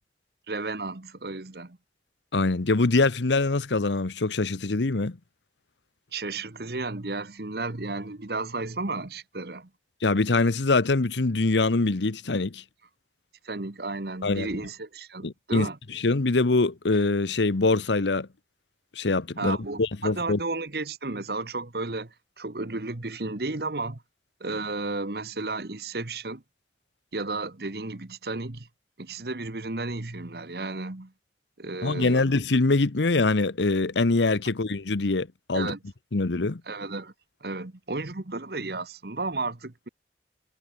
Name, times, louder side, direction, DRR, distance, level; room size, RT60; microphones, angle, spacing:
voice 1, 0.5-1.8 6.1-9.7 13.4-15.8 19.4-24.0 24.4-26.4 27.1-28.7 29.0-31.1 31.6-32.3 35.5-35.8 36.7-37.1 37.4-39.9, right 3 dB, 60° right, 1.3 m, -33 dB
voice 2, 2.3-5.2 10.0-12.6 14.2-14.5 15.2-18.3 18.9-20.4 31.8-35.7 36.1-36.6, left 3 dB, 90° left, 1.0 m, -24 dB
head